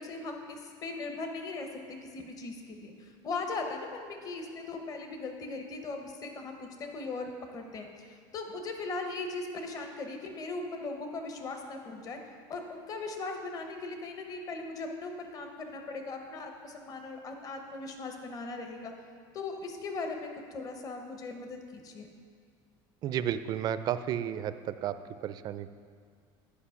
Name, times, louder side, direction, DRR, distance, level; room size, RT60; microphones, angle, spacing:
voice 1, 0.0-1.7 2.1-12.2 12.5-18.9 19.3-22.1, left 3 dB, 35° left, 4 dB, 0.9 m, -39 dB
voice 2, 23.0-24.9 25.2-25.7, right 10 dB, 40° right, 12 dB, 0.4 m, -32 dB
10.5 x 5.0 x 5.7 m, 2.1 s
cardioid pair, 135°, 10 cm